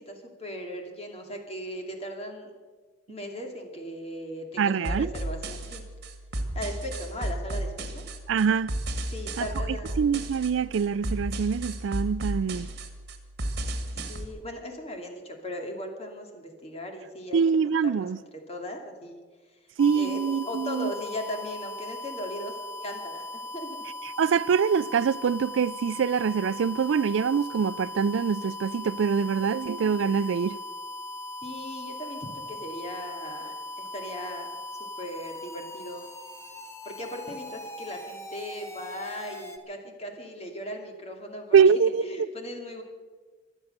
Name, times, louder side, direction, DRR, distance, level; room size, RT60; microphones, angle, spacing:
voice 1, 0.0-2.5 3.1-5.8 6.5-8.0 9.1-10.0 14.1-18.1 18.5-19.2 19.9-20.2 20.5-22.6 22.8-23.8 31.4-34.5 35.0-36.0 36.8-41.6 42.0-42.8, left 1 dB, 35° left, 2.4 m, -38 dB
voice 2, 4.6-5.1 8.3-8.7 9.4-9.5 10.0-12.7 17.3-18.2 19.8-20.9 24.2-30.6 41.5-42.3, right 6 dB, 80° right, 0.4 m, -24 dB
sound 1, 4.8-14.3, right 1 dB, 60° right, 1.7 m, -34 dB
sound 2, 19.8-39.6, left 2 dB, 15° left, 1.2 m, -39 dB
24.0 x 8.2 x 6.7 m
head